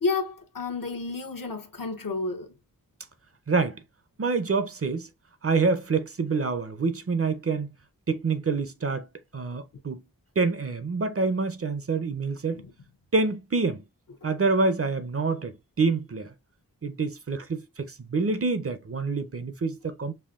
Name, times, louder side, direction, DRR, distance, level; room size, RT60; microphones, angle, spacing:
voice 1, 0.0-2.5 12.5-12.6, left 3 dB, 70° left, 0.9 m, -30 dB
voice 2, 3.5-3.8 4.2-5.1 5.4-7.7 8.1-9.1 9.3-10.0 10.4-12.6 13.1-13.8 14.2-16.3 16.8-20.1, right 4 dB, 40° right, 0.6 m, -27 dB
5.5 x 2.2 x 2.4 m
wide cardioid pair, 60°, 35 cm